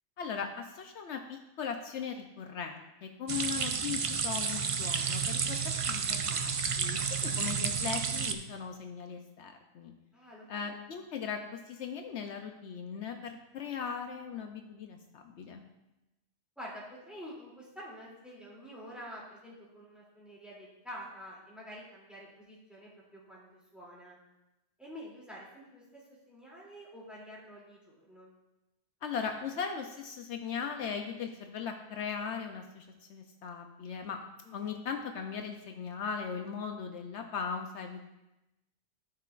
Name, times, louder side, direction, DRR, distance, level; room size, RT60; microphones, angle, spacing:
voice 1, 0.2-6.5 6.8-9.9 10.5-15.7 29.0-34.2 34.5-38.1, left 6 dB, 75° left, 4 dB, 1.0 m, -38 dB
sound 1, 3.3-8.3, right 6 dB, 60° right, 0.3 m, -31 dB
voice 2, 10.1-10.7 16.6-24.2 24.8-28.3 34.4-34.8, equal, ahead, -6 dB, 2.7 m, -48 dB
13.5 x 5.7 x 2.5 m, 0.95 s
omnidirectional pair, 1.2 m